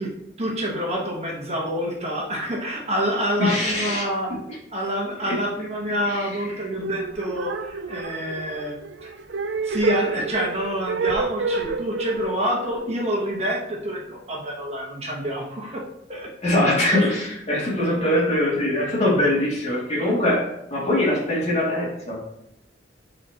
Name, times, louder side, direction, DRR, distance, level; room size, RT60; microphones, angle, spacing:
voice 1, 0.4-4.3 4.7-9.1 9.6-15.8 16.1-16.3, equal, 35° right, -1 dB, 1.4 m, -27 dB
voice 2, 3.4-4.0 4.3-4.4 5.3-5.4 6.0-6.5 16.4-22.2, left 1 dB, 40° left, -5 dB, 2.5 m, -22 dB
sound 1, 6.7-13.9, right 4 dB, 85° right, 0.5 m, -30 dB
8.4 x 4.2 x 3.0 m, 0.82 s
head